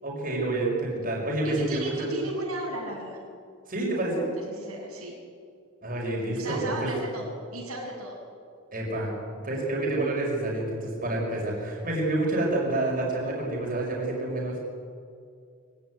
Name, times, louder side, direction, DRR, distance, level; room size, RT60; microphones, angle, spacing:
voice 1, 0.0-2.1 3.7-4.2 5.8-6.9 8.7-9.1 9.4-14.6, right 2 dB, 40° right, -2 dB, 5.9 m, -28 dB
voice 2, 1.4-3.2 4.4-5.1 6.4-8.2, right 1 dB, 90° right, -2 dB, 6.8 m, -35 dB
24.0 x 16.5 x 9.7 m, 2.4 s
head